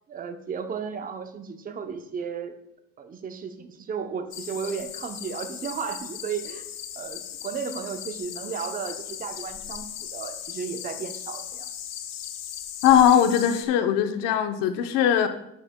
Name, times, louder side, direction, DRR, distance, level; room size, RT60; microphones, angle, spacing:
voice 1, 0.1-2.6 3.0-6.7 7.0-11.7, right 6 dB, 25° right, 7 dB, 0.7 m, -34 dB
sound 1, 4.3-13.7, left 10 dB, 55° left, 0.8 m, -38 dB
voice 2, 12.8-15.3, left 9 dB, 90° left, 8 dB, 0.9 m, -20 dB
10.5 x 8.4 x 2.2 m, 0.81 s
cardioid pair, 150°, 32 cm